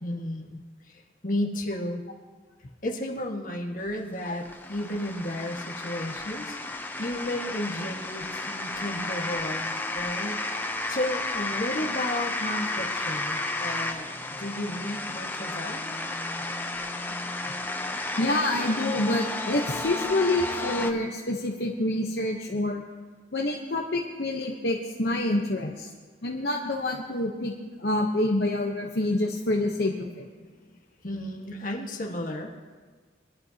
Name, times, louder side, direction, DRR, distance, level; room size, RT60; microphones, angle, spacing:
voice 1, 0.0-2.0 2.8-6.6 6.9-15.8 30.4-30.6 31.0-32.5, left 1 dB, 45° left, 0 dB, 1.6 m, -33 dB
sound 1, 3.9-20.9, left 2 dB, 10° left, 0.6 m, -32 dB
voice 2, 18.2-22.8 23.3-25.9 26.2-27.5 27.8-30.3, left 1 dB, 60° left, 0 dB, 1.0 m, -27 dB
23.0 x 11.5 x 2.9 m, 1.5 s
head